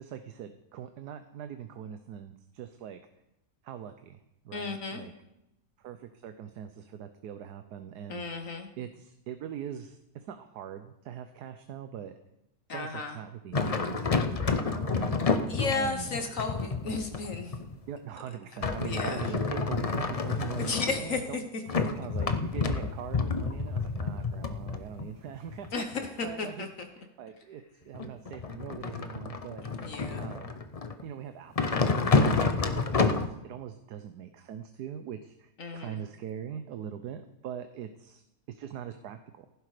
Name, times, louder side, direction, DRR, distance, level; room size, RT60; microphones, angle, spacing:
voice 1, 0.0-3.0 3.6-4.2 4.4-5.1 5.8-8.2 8.8-12.1 12.7-15.2 15.7-16.2 17.7-21.4 22.0-25.9 26.2-26.6 27.0-29.6 30.2-30.5 31.0-38.2 38.5-39.5, right 9 dB, 85° right, 8 dB, 1.4 m, -42 dB
voice 2, 4.5-5.0 8.1-8.7 12.7-13.2 14.5-14.6 15.5-17.6 18.8-19.3 20.6-21.4 25.7-25.9 26.2-26.9 29.8-30.3 35.6-36.0, left 4 dB, 55° left, 5 dB, 1.6 m, -34 dB
sound 1, 13.5-18.0 18.6-21.3 21.7-26.3 27.9-31.0 31.6-33.3, left 4 dB, 35° left, 0.6 m, -29 dB
15.5 x 11.5 x 5.0 m, 0.88 s
omnidirectional pair, 1.7 m